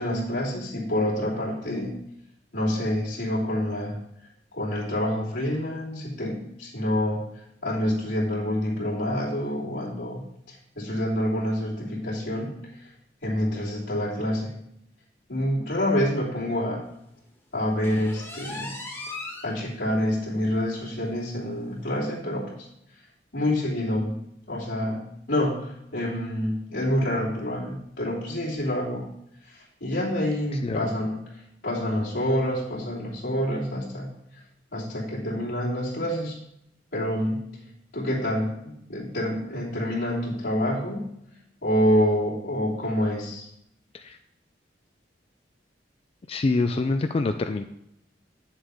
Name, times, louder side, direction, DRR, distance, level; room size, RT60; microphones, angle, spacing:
voice 1, 0.0-1.9 2.5-4.0 4.5-7.2 7.6-10.2 10.7-12.6 13.2-14.5 15.3-16.9 17.5-18.8 19.4-22.6 23.3-29.1 29.5-31.2 31.6-34.1 34.7-36.4 36.9-37.5 37.9-41.1 41.6-43.5, left 1 dB, 85° left, -6 dB, 3.1 m, -27 dB
sound 1, 17.8-19.5 20.0-20.1 20.5-20.6 21.0-21.1 22.1-22.2, left 2 dB, 15° left, 1.5 m, -37 dB
voice 2, 46.3-47.6, left 3 dB, 35° left, 7 dB, 0.4 m, -25 dB
8.8 x 7.3 x 3.5 m, 0.78 s
head